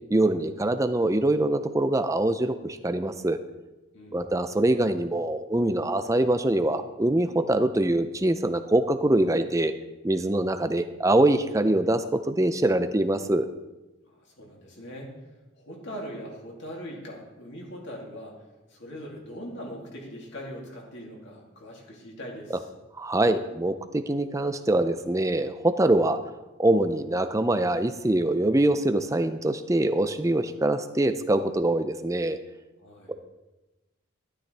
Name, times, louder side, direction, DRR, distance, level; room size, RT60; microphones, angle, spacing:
voice 1, 0.1-3.4 4.1-9.7 10.0-13.5 23.0-26.2 26.6-32.4 33.1-33.2, right 1 dB, 15° right, 10 dB, 0.5 m, -24 dB
voice 2, 3.9-4.3 14.1-15.1 15.5-18.4 18.7-22.6 32.8-33.1, equal, 55° left, -2 dB, 2.7 m, -41 dB
12.5 x 12.0 x 3.4 m, 1.1 s
head